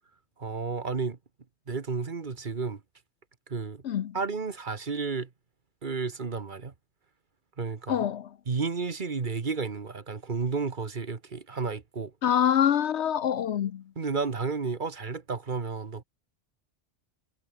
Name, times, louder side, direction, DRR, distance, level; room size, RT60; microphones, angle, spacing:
voice 1, 0.4-1.2 1.7-2.8 3.5-3.8 4.1-5.3 5.8-6.7 7.6-8.1 8.5-12.1 13.9-16.0, right 4 dB, 45° right, 1.5 m, -32 dB
voice 2, 3.8-4.2 7.9-8.3 12.2-13.8, left 9 dB, 75° left, 1.0 m, -25 dB
omnidirectional pair, 1.2 m